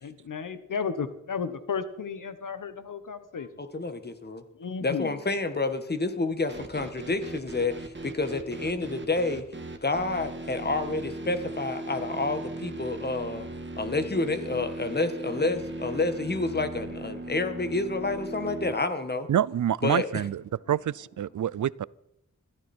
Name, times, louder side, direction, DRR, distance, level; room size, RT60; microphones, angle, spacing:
voice 1, 0.0-3.5 4.6-5.2, left 6 dB, 90° left, 1.4 m, -33 dB
voice 2, 3.6-4.4 4.8-9.4 9.8-13.5 13.8-19.3 19.8-20.3, left 3 dB, 30° left, 1.6 m, -29 dB
sound 1, 6.5-18.7, right 2 dB, 35° right, 1.9 m, -38 dB
voice 3, 19.3-20.4 20.7-21.9, right 10 dB, 75° right, 0.5 m, -27 dB
21.5 x 14.0 x 4.5 m
wide cardioid pair, 110°, 31 cm